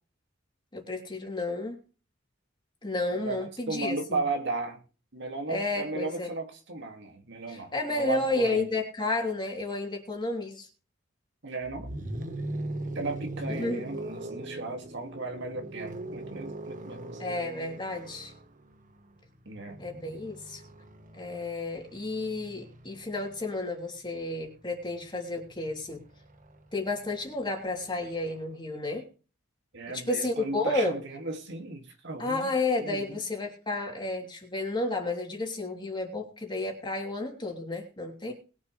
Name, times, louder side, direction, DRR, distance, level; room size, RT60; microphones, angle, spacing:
voice 1, 0.7-1.8 2.8-4.2 5.5-6.3 7.5-10.7 13.5-13.8 17.2-18.3 19.8-20.6 21.1-26.0 26.7-29.1 29.9-31.0 32.2-38.3, left 2 dB, 25° left, 3.1 m, -31 dB
voice 2, 3.7-4.8 5.1-8.6 11.4-11.9 12.9-17.4 19.5-19.8 29.7-32.5 32.8-33.2, right 3 dB, 60° right, 2.2 m, -35 dB
sound 1, 11.6-23.6 24.8-28.4, right 1 dB, 40° right, 1.3 m, -41 dB
21.0 x 7.1 x 3.3 m
head